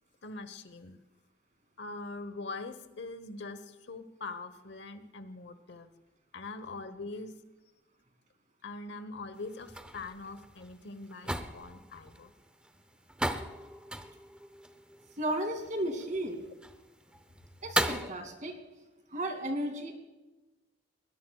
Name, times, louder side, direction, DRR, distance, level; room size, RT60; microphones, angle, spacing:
voice 1, 0.2-1.0 1.8-5.9 6.3-7.4 8.6-12.3, left 3 dB, 65° left, 11 dB, 1.1 m, -43 dB
sound 1, 9.3-18.1, right 1 dB, 5° right, 0.7 m, -38 dB
voice 2, 15.2-16.4 17.6-18.6 19.1-19.9, right 1 dB, 45° right, 4 dB, 2.6 m, -34 dB
21.5 x 19.5 x 2.4 m, 1.1 s
head